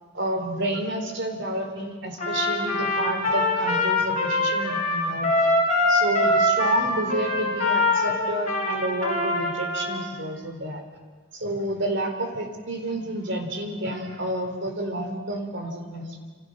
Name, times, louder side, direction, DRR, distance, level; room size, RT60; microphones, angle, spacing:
voice 1, 0.1-5.3 5.9-10.8 11.3-16.2, right 1 dB, 55° right, 5 dB, 3.9 m, -30 dB
Trumpet, 2.2-10.0, left 2 dB, 35° left, 6.5 m, -23 dB
28.5 x 27.5 x 6.6 m, 1.5 s
head